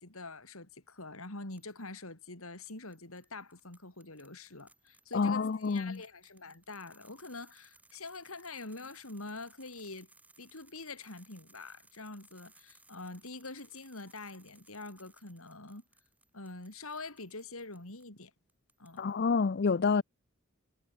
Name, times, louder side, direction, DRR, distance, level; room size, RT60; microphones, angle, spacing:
voice 1, 0.0-10.1 10.4-15.8 16.3-18.3 18.8-19.0, left 3 dB, 75° left, 4.5 m, -45 dB
sound 1, 1.6-2.0 2.7-18.1 18.5-19.3, right 2 dB, 5° right, 5.8 m, -64 dB
voice 2, 5.1-6.0 19.0-20.0, left 5 dB, 50° left, 0.5 m, -28 dB
head